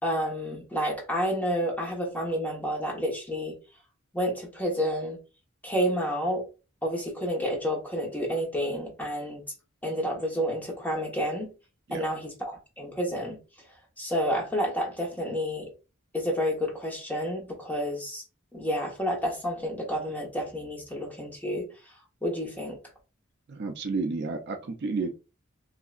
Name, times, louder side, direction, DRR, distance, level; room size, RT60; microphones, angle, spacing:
voice 1, 0.0-3.5 4.1-5.2 5.6-6.4 6.8-9.4 9.8-11.5 11.9-13.4 14.0-15.7 16.1-18.2 18.5-21.7 22.2-22.8, equal, 10° left, 1.2 m, -30 dB
voice 2, 23.5-25.1, right 3 dB, 55° right, 0.5 m, -31 dB
3.2 x 2.8 x 2.4 m
head